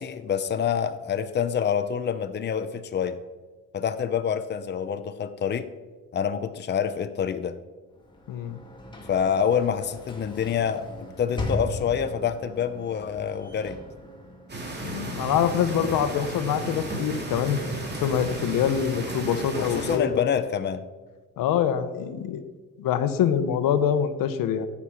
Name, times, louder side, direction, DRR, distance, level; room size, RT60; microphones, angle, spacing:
voice 1, 0.0-3.2 3.7-5.7 6.1-7.6 9.1-13.8 19.5-20.8, left 8 dB, 30° left, 10 dB, 0.7 m, -27 dB
Sliding door / Slam, 8.0-15.0, left 2 dB, 15° left, 2.4 m, -38 dB
voice 2, 8.3-8.6 14.8-17.6 18.0-20.2 21.4-22.5 22.8-24.7, left 8 dB, 80° left, 11 dB, 1.1 m, -25 dB
sound 1, 14.5-20.0, right 2 dB, 30° right, 2.6 m, -34 dB
13.5 x 8.5 x 5.8 m, 1.4 s
cardioid pair, 110°, 33 cm